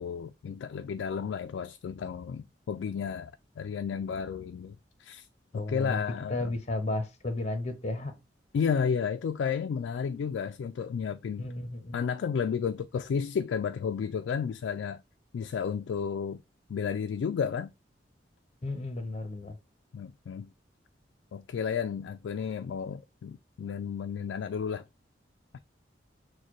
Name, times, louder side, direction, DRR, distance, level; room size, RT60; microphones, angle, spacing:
voice 1, 0.0-3.3 3.6-5.3 5.5-6.5 8.5-11.5 11.9-15.0 15.3-16.4 16.7-17.7 19.9-20.5 21.3-24.8 25.5-25.6, left 6 dB, 85° left, 0.3 m, -32 dB
voice 2, 5.5-6.0 6.3-8.1 11.4-12.0 18.6-19.6, left 2 dB, 35° left, 0.8 m, -33 dB
6.4 x 2.2 x 2.9 m
head